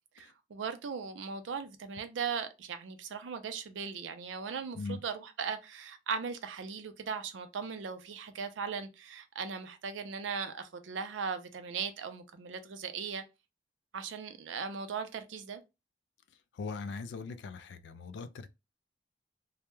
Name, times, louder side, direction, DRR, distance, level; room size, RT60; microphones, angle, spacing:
voice 1, 0.2-13.2 13.9-15.6, right 6 dB, 90° right, 0.4 m, -38 dB
voice 2, 16.5-18.5, left 4 dB, 75° left, 0.3 m, -40 dB
2.1 x 2.0 x 3.0 m
head